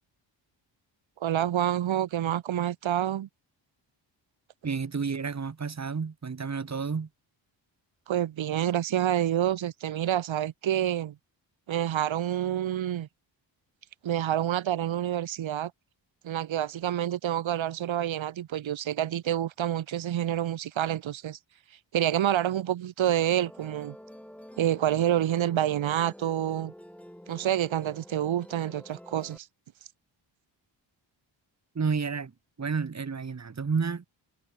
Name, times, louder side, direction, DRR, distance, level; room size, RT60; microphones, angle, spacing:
voice 1, 1.2-3.3 8.1-11.1 11.7-13.1 14.0-15.7 16.2-21.4 21.9-23.9 24.6-26.7 27.3-29.5, right 11 dB, 80° right, 2.9 m, -28 dB
voice 2, 4.6-7.1 31.7-32.3 32.6-34.1, right 5 dB, 35° right, 3.3 m, -30 dB
Musical instrument, 23.0-29.4, equal, 5° left, 7.9 m, -48 dB
cardioid pair, 95°, 46 cm